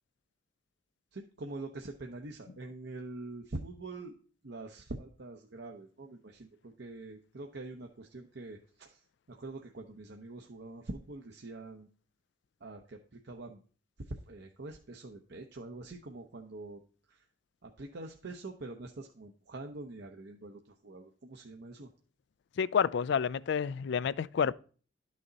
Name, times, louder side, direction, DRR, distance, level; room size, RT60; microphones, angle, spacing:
voice 1, 1.1-4.1 4.4-9.0 9.3-11.9 12.6-13.6 14.1-16.8 17.1-17.3 17.6-21.9, right 2 dB, 60° right, 0.8 m, -44 dB
voice 2, 22.6-24.5, left 7 dB, 65° left, 0.4 m, -29 dB
11.5 x 6.4 x 4.0 m
head